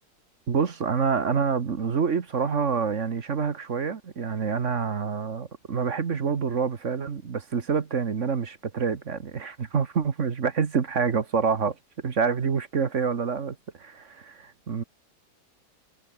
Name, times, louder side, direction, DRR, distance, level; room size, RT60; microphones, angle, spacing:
voice 1, 0.5-11.8 12.0-14.8, right 6 dB, 45° right, 1.6 m, -27 dB
omnidirectional pair, 1.9 m